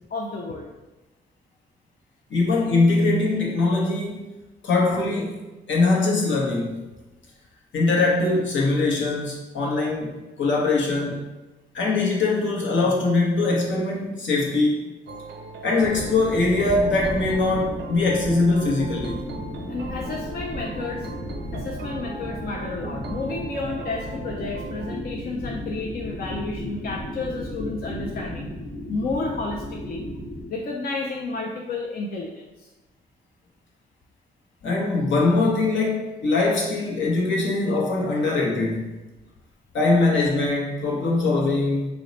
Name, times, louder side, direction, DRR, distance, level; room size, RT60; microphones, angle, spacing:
voice 1, 0.1-0.7 19.7-21.1 21.5-28.5 28.9-30.1 30.5-32.7, left 3 dB, 50° left, 0 dB, 0.4 m, -31 dB
voice 2, 2.3-4.3 4.6-5.4 5.7-6.8 7.7-11.3 11.7-14.8 15.6-19.1 34.6-38.9 39.7-41.9, left 3 dB, 70° left, -2 dB, 0.9 m, -22 dB
sound 1, 15.1-24.9, right 4 dB, 60° right, 0.4 m, -40 dB
sound 2, 15.8-30.4, left 1 dB, 15° left, 0.9 m, -34 dB
2.9 x 2.1 x 3.8 m, 1.1 s
supercardioid pair, 50°, 20 cm